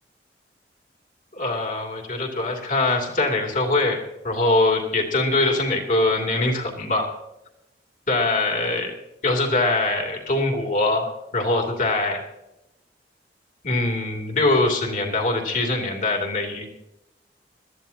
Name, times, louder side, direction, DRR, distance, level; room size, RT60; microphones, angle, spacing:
voice 1, 1.3-7.1 8.1-8.9 9.2-12.2 13.6-16.7, left 2 dB, 45° left, 2 dB, 2.8 m, -23 dB
21.0 x 13.5 x 2.9 m, 0.92 s
head